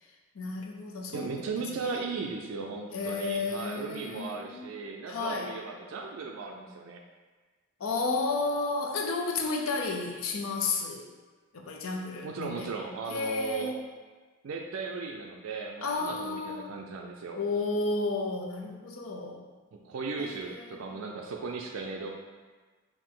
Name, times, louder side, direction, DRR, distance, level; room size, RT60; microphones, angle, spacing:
voice 1, 0.3-1.8 2.9-4.7 5.1-5.5 7.8-11.1 11.5-12.7 13.1-13.8 15.8-16.7 17.4-19.5 20.2-20.9, left 3 dB, 85° left, 2 dB, 0.6 m, -32 dB
voice 2, 1.1-7.0 12.2-13.7 14.4-17.4 19.7-22.1, right 4 dB, 80° right, 1 dB, 0.4 m, -37 dB
4.6 x 2.6 x 3.7 m, 1.4 s
head